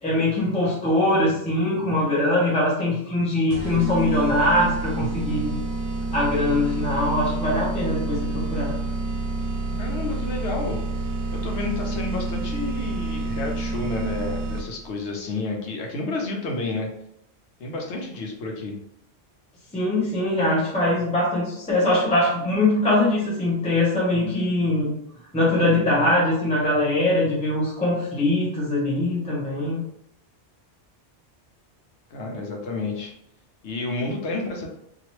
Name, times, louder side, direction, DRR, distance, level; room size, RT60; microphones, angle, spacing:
voice 1, 0.0-5.5 6.1-8.8 9.7-9.9 19.7-24.9 25.3-29.8, left 1 dB, 5° left, -5 dB, 0.7 m, -22 dB
sound 1, 3.5-14.9, right 2 dB, 75° right, 0.9 m, -28 dB
voice 2, 9.8-10.8 11.3-16.9 17.6-18.7 32.1-33.1 33.6-34.7, left 3 dB, 75° left, 1 dB, 1.0 m, -30 dB
2.9 x 2.5 x 3.0 m, 0.76 s
omnidirectional pair, 1.2 m